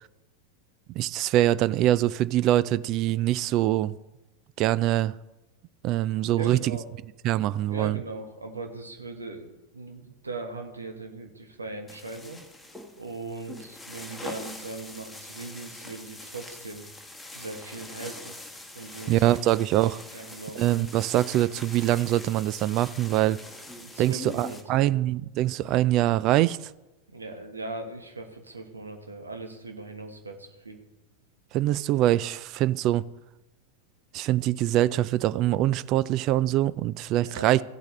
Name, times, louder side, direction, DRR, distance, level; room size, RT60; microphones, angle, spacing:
voice 1, 1.0-3.9 4.6-5.1 5.8-6.8 7.2-8.0 19.1-20.0 20.6-23.4 24.0-26.6 31.5-33.0 34.1-37.6, right 14 dB, 40° right, 0.3 m, -24 dB
voice 2, 6.4-6.9 7.7-12.4 13.0-16.8 17.3-18.4 18.7-19.3 20.1-20.6 23.7-24.8 27.1-30.8 37.2-37.6, right 3 dB, 75° right, 1.4 m, -39 dB
sound 1, 11.9-24.6, left 2 dB, 5° left, 1.4 m, -43 dB
15.5 x 8.2 x 3.2 m
figure-of-eight pair, 90°, 0 cm